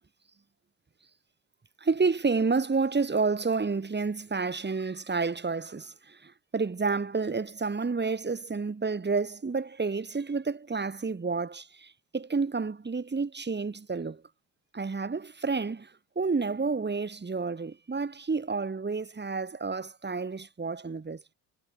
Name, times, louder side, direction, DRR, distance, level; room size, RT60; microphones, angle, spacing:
voice 1, 1.8-14.2 14.7-21.3, right 4 dB, 25° right, 7.1 m, -30 dB
supercardioid pair, 85°, 41 cm